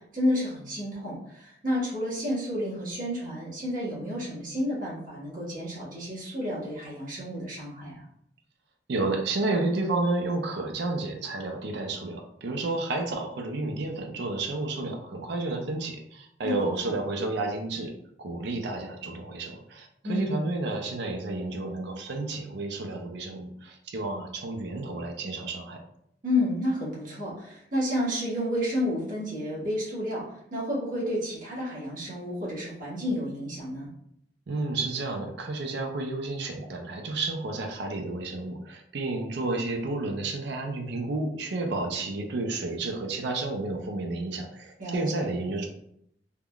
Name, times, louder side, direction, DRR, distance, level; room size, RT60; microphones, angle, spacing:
voice 1, 0.1-7.9 16.4-16.5 16.8-16.9 20.0-20.4 26.2-30.2 30.5-33.9 44.8-45.3, left 1 dB, 50° right, -7 dB, 1.1 m, -30 dB
voice 2, 8.9-17.9 18.2-25.8 34.5-45.7, right 2 dB, 70° right, 3 dB, 0.5 m, -31 dB
3.4 x 2.2 x 2.3 m, 0.73 s
head